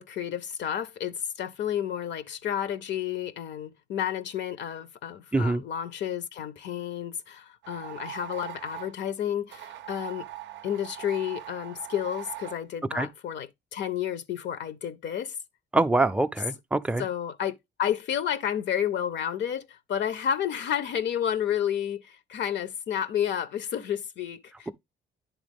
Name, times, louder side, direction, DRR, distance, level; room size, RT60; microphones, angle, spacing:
voice 1, 0.0-10.3 10.6-15.4 17.0-24.7, left 9 dB, 65° left, 0.5 m, -31 dB
voice 2, 5.3-5.6 12.9-13.1 15.7-17.0, right 2 dB, 5° right, 0.3 m, -24 dB
sound 1, 7.6-8.9 9.5-12.6, right 13 dB, 65° right, 0.4 m, -41 dB
10.5 x 3.5 x 3.4 m
cardioid pair, 90°, 20 cm